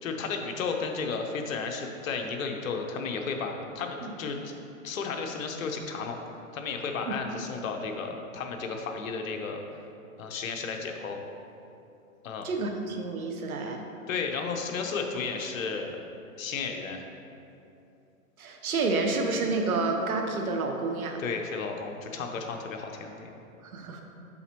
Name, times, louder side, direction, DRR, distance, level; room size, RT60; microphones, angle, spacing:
voice 1, 0.0-4.5 4.8-6.2 6.5-9.6 10.2-11.2 12.2-12.5 14.1-16.0 16.4-17.0 21.2-23.3, left 5 dB, 70° left, 3 dB, 1.0 m, -33 dB
voice 2, 12.4-13.8 18.4-21.2 23.6-24.0, right 3 dB, 90° right, 3 dB, 1.1 m, -29 dB
7.9 x 5.9 x 3.0 m, 2.7 s
hypercardioid pair, 140°, 42 cm